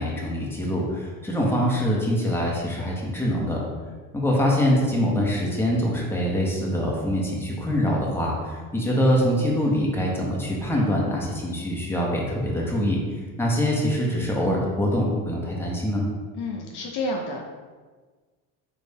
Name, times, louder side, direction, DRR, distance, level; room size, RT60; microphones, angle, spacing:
voice 1, 0.0-3.6 4.1-16.1, equal, 5° left, -4 dB, 1.3 m, -24 dB
voice 2, 16.3-17.5, left 2 dB, 55° left, 1 dB, 0.7 m, -30 dB
4.0 x 3.6 x 3.5 m, 1.4 s
hypercardioid pair, 70°, 49 cm